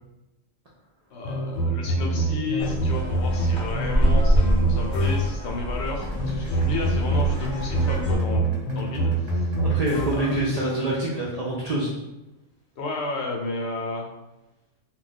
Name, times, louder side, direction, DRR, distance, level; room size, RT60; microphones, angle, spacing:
voice 1, 1.1-9.5 10.0-10.4 12.8-14.1, left 2 dB, 65° left, -1 dB, 0.8 m, -32 dB
sound 1, 1.2-5.5 6.1-10.4, right 2 dB, 85° left, 1.0 m, -25 dB
sound 2, 2.6-8.2, equal, 25° left, 0.7 m, -26 dB
sound 3, 5.9-11.9, right 3 dB, 40° right, 0.8 m, -48 dB
voice 2, 9.6-11.9, right 1 dB, 70° right, -4 dB, 0.3 m, -26 dB
2.3 x 2.2 x 3.9 m, 0.99 s
omnidirectional pair, 1.3 m